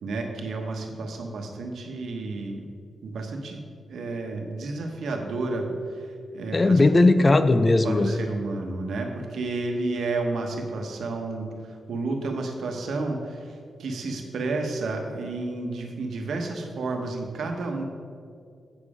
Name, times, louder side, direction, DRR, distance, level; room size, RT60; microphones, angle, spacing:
voice 1, 0.0-2.6 3.0-3.6 3.9-5.7 5.9-6.8 7.8-17.8, right 3 dB, 80° right, 3 dB, 1.1 m, -31 dB
voice 2, 6.5-8.2, left 2 dB, 25° left, 11 dB, 0.4 m, -18 dB
8.1 x 7.2 x 5.0 m, 2.3 s
wide cardioid pair, 140°, 0 cm